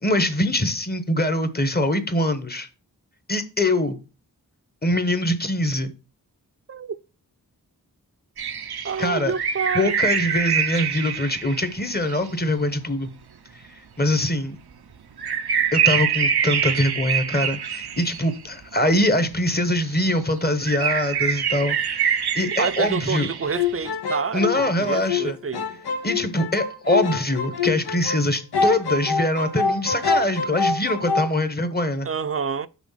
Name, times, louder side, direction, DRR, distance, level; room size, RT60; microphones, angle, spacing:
voice 1, 0.0-2.7 3.3-4.0 4.8-5.9 9.0-9.3 9.7-13.1 13.7-14.6 15.7-23.3 24.3-25.4 26.0-32.1, left 1 dB, 25° left, 1.0 m, -23 dB
sound 1, 8.4-12.2 14.1-14.2 15.2-18.6 19.7-20.2 20.6-23.7, right 7 dB, 90° right, 0.7 m, -25 dB
voice 2, 8.8-9.9 21.6-21.7 22.6-25.8 32.0-32.7, right 6 dB, 40° right, 0.5 m, -28 dB
sound 2, 23.4-28.3 28.5-31.3, left 4 dB, 90° left, 0.8 m, -25 dB
6.1 x 3.9 x 5.6 m
wide cardioid pair, 50°, 38 cm